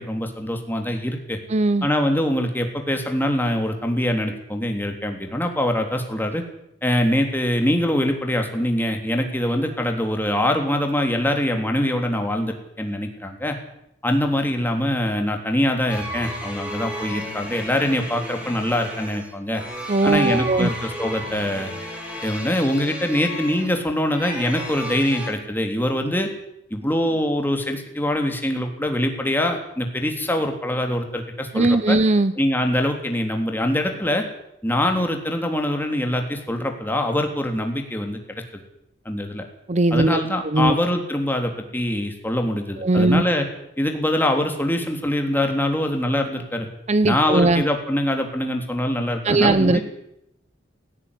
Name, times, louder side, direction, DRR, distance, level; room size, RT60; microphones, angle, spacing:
voice 1, 0.0-1.4 1.8-6.4 6.8-13.6 14.0-19.6 20.0-21.7 22.2-26.3 26.7-32.0 32.4-34.2 34.6-38.4 39.1-39.4 39.9-43.4 43.8-46.7 47.0-49.8, left 1 dB, 10° left, 4 dB, 3.5 m, -23 dB
voice 2, 1.5-1.9 19.9-20.7 31.5-32.3 39.7-40.8 42.8-43.2 46.9-47.6 49.2-49.8, right 2 dB, 35° right, 14 dB, 0.8 m, -19 dB
sound 1, 15.9-25.3, equal, 5° right, 5.9 m, -34 dB
17.5 x 17.0 x 10.0 m, 0.79 s
head